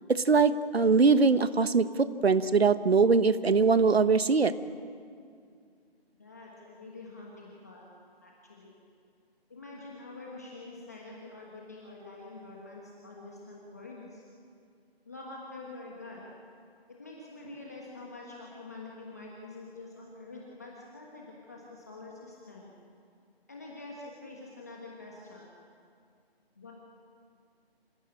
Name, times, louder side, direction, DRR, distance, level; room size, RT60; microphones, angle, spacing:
voice 1, 0.1-4.5, right 4 dB, 75° right, 13 dB, 1.2 m, -22 dB
voice 2, 6.2-7.9 8.2-8.8 9.5-14.2 15.0-16.3 17.0-22.7 23.5-25.5 26.6-26.7, left 2 dB, 15° left, -3 dB, 1.3 m, -46 dB
27.0 x 16.0 x 8.8 m, 2.3 s
hypercardioid pair, 180°, 31 cm